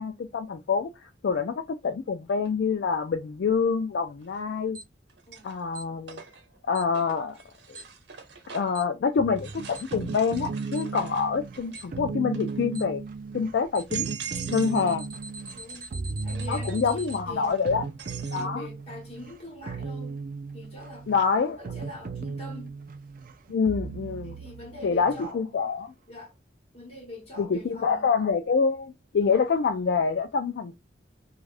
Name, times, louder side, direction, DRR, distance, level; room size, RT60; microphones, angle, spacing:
voice 1, 0.0-4.8 5.4-6.2 6.7-7.3 7.7-7.8 8.5-13.0 13.3-14.1 14.5-15.1 16.5-17.8 18.3-18.7 21.1-21.6 23.5-24.4 24.8-25.9 27.4-30.8, left 5 dB, 70° left, 0.4 m, -26 dB
sound 1, 2.4-2.5 4.2-4.7 5.1-8.9 9.4-12.0 12.3-12.8 13.3-13.4 13.7-14.8 15.1-18.5, right 8 dB, 85° right, 0.9 m, -43 dB
Alarm, 4.8-4.9 5.8-5.9 6.8-6.9 7.8-7.9 8.8-8.9 9.8-9.9 10.8-10.9 11.8-11.9 12.8-12.9 13.8-13.9 14.8-17.2, right 2 dB, 20° right, 0.8 m, -42 dB
sound 2, 9.2-25.3, right 4 dB, 50° right, 0.4 m, -36 dB
voice 2, 15.5-15.9 16.2-17.8 18.3-20.2 20.5-21.1 21.6-22.7 24.2-25.8 26.1-26.3 26.7-28.1, left 1 dB, 35° left, 1.5 m, -43 dB
3.3 x 2.3 x 2.5 m
head